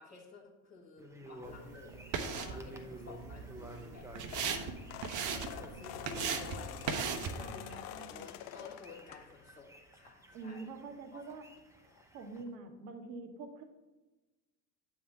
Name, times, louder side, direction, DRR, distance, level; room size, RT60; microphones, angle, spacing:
voice 1, 0.0-10.7 11.1-11.4, left 4 dB, 20° left, -6 dB, 1.5 m, -53 dB
sound 1, 1.0-12.4, right 1 dB, 5° right, 0.7 m, -54 dB
sound 2, 1.4-7.5, right 6 dB, 40° right, 0.8 m, -39 dB
sound 3, 4.0-9.6 10.1-10.3 11.6-11.7 11.9-12.0 12.4-12.5, left 12 dB, 60° left, 0.6 m, -47 dB
voice 2, 7.4-8.3 10.3-11.5 12.1-13.6, right 3 dB, 70° right, 6 dB, 1.1 m, -46 dB
8.0 x 3.6 x 6.5 m, 1.1 s
figure-of-eight pair, 60°, 49 cm